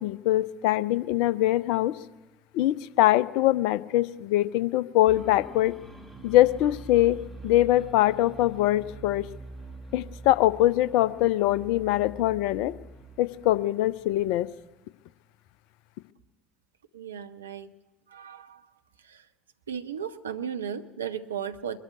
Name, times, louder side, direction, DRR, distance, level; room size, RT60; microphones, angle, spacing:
voice 1, 0.0-2.0 2.5-5.7 6.2-7.2 7.4-9.3 9.9-12.7 13.2-14.5, left 15 dB, 60° left, 17 dB, 0.7 m, -23 dB
sound 1, 5.1-14.7, right 3 dB, 5° right, 2.7 m, -45 dB
voice 2, 16.9-17.7 18.1-18.7 19.0-19.3 19.7-21.8, right 8 dB, 80° right, 9 dB, 0.9 m, -35 dB
22.5 x 12.5 x 9.4 m, 1.2 s
figure-of-eight pair, 60°, 0 cm